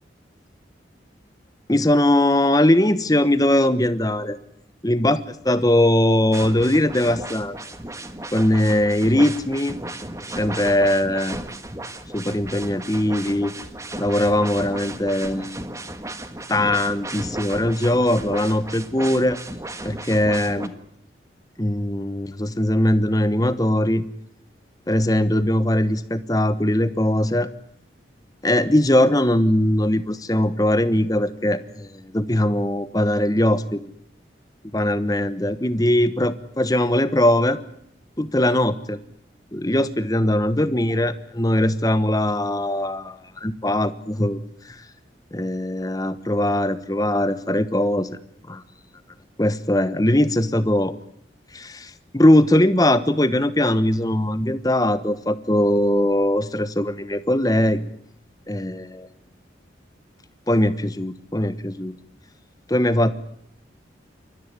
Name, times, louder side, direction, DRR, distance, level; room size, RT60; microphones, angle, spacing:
voice 1, 1.7-4.4 4.8-5.2 5.4-7.6 8.3-9.8 10.4-11.4 12.1-13.5 14.0-15.6 16.5-19.4 19.8-20.7 21.6-24.0 24.9-27.5 28.4-33.9 34.7-37.6 38.2-39.0 39.5-44.9 45.3-48.2 48.5-48.6 49.4-50.9 51.5-57.8 58.5-59.1 60.5-61.9 62.7-63.2, left 1 dB, 20° left, 12 dB, 1.2 m, -20 dB
sound 1, 6.3-20.7, right 1 dB, 15° right, 1.5 m, -35 dB
28.5 x 14.5 x 9.7 m, 0.71 s
head